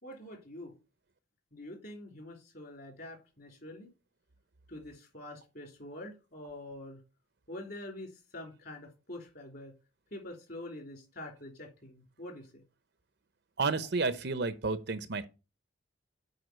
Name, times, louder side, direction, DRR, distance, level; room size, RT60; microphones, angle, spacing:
voice 1, 0.0-0.8 1.5-3.9 4.7-7.0 7.5-9.7 10.1-12.6, left 1 dB, 50° left, 3.2 m, -45 dB
voice 2, 13.6-15.3, right 4 dB, 50° right, 0.7 m, -31 dB
8.0 x 4.9 x 5.1 m
head